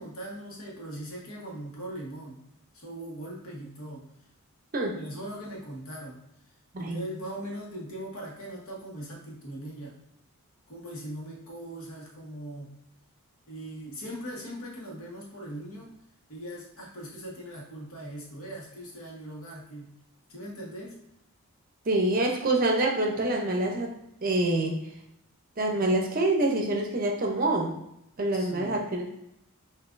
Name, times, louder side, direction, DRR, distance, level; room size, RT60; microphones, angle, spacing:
voice 1, 0.0-2.4 2.7-4.1 4.9-6.2 6.8-10.0 10.7-12.7 13.5-15.9 16.3-19.9 20.3-21.0 28.4-28.8, right 1 dB, 75° left, -3 dB, 1.2 m, -40 dB
voice 2, 6.7-7.0 21.9-23.9 24.2-24.8 25.6-27.8 28.2-29.1, right 2 dB, 40° right, 1 dB, 0.6 m, -26 dB
5.8 x 2.6 x 2.5 m, 0.80 s
head